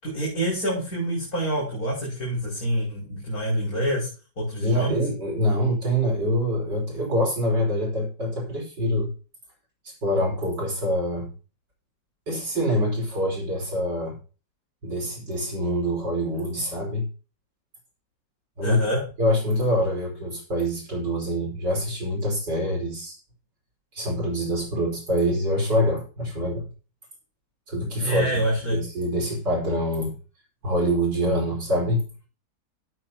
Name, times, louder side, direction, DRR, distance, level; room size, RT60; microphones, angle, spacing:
voice 1, 0.0-4.1 4.4-5.0 18.6-19.0 28.0-28.8, right 1 dB, 55° left, -5 dB, 6.2 m, -26 dB
voice 2, 4.6-9.1 10.0-11.3 12.3-14.2 14.8-17.1 18.6-18.8 19.2-23.2 23.9-26.6 27.7-28.3 28.6-30.1 30.6-32.0, equal, 80° right, -3 dB, 5.8 m, -25 dB
17.0 x 8.3 x 2.9 m, 0.35 s
omnidirectional pair, 1.9 m